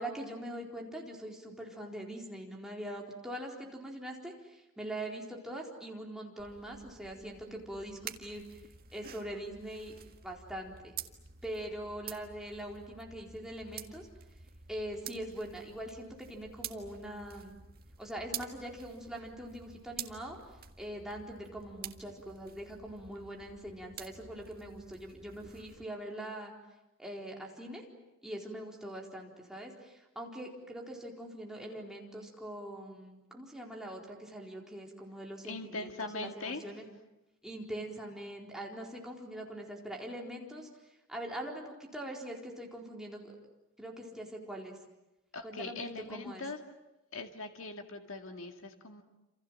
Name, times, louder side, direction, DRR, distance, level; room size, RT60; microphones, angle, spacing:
voice 1, 0.0-8.4 8.9-9.9 10.2-10.9 11.4-14.1 14.7-17.6 18.0-20.4 20.8-26.5 27.0-27.8 28.2-36.9 37.4-40.7 41.1-43.4 43.8-44.8 45.4-45.8 46.1-46.4, right 1 dB, 5° right, -1 dB, 4.3 m, -42 dB
sound 1, 6.4-25.8, right 8 dB, 45° right, 1.7 m, -49 dB
voice 2, 35.4-36.7 45.3-46.6 47.1-49.0, left 3 dB, 65° left, 5 dB, 2.1 m, -41 dB
28.5 x 27.5 x 7.6 m, 0.97 s
head